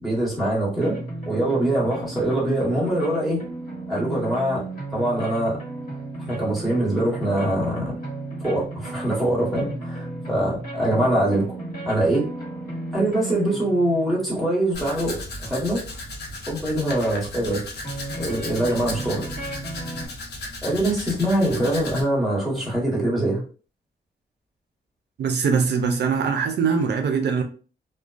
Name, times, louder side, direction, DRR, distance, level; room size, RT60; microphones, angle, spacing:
voice 1, 0.0-1.0 1.3-3.4 3.9-4.6 4.9-5.6 6.2-7.9 8.4-11.6 11.8-12.3 12.9-15.8 16.5-17.6 18.2-19.3 20.6-23.4, right 1 dB, ahead, 1.4 m, -23 dB
sound 1, 0.7-14.4 15.7-15.8 16.2-16.3 16.8-16.9 17.8-20.1, right 2 dB, 55° left, 1.1 m, -34 dB
Domestic sounds home sounds, 14.7-22.0, left 2 dB, 70° left, 0.7 m, -35 dB
voice 2, 25.2-27.4, right 5 dB, 75° right, 0.4 m, -22 dB
2.4 x 2.2 x 2.4 m
cardioid pair, 100°, 18 cm